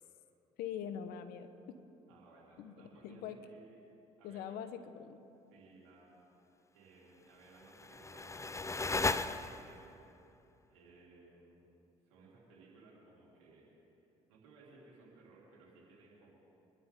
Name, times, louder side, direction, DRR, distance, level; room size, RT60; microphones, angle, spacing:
voice 1, 0.6-1.8 2.6-2.7 3.0-3.4 4.2-5.2, left 8 dB, 70° left, 10 dB, 1.0 m, -43 dB
voice 2, 2.1-3.8 4.2-4.5 5.5-6.1 6.7-10.1 10.6-11.6 12.0-14.0 14.3-16.3, right 3 dB, 85° right, -5 dB, 4.0 m, -60 dB
sound 1, 7.5-9.9, left 3 dB, 20° left, 0.6 m, -36 dB
25.0 x 12.0 x 3.7 m, 2.8 s
hypercardioid pair, 55°, 16 cm